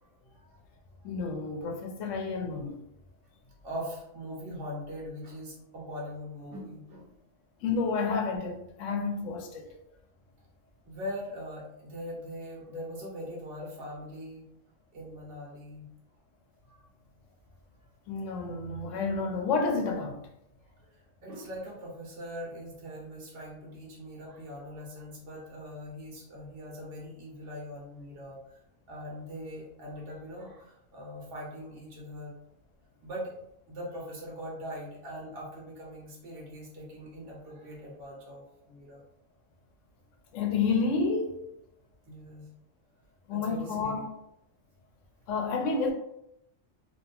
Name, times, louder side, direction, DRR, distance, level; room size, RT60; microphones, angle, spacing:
voice 1, 1.0-2.8 7.6-9.7 12.7-12.8 18.1-20.2 40.3-41.4 43.3-44.1 45.3-45.9, left 4 dB, 80° left, 0.9 m, -30 dB
voice 2, 3.6-7.1 9.6-9.7 10.9-14.5 14.9-15.9 16.6-16.8 21.2-28.4 28.9-32.3 33.0-33.3 33.7-39.0 42.1-42.5 43.3-44.1, equal, 50° right, 1.1 m, -41 dB
2.8 x 2.4 x 2.3 m
omnidirectional pair, 1.3 m